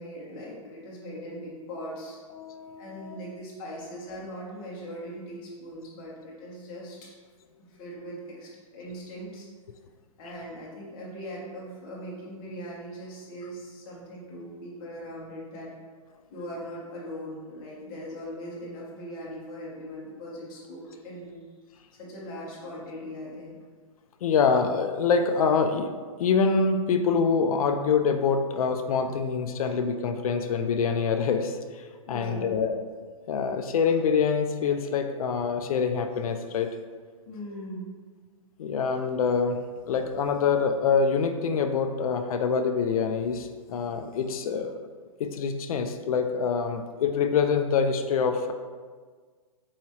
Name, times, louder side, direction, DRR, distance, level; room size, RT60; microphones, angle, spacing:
voice 1, 0.0-2.2 2.8-7.1 7.7-9.5 10.2-15.7 16.3-21.4 22.0-23.6 32.1-32.6 37.3-37.9, equal, 35° left, -5 dB, 1.2 m, -40 dB
voice 2, 2.3-3.2 24.2-25.9 26.2-32.8 33.3-36.7 38.6-39.6 39.9-44.8 45.2-48.5, left 5 dB, 80° left, 7 dB, 0.4 m, -25 dB
4.7 x 3.0 x 2.8 m, 1.5 s
hypercardioid pair, 150°, 18 cm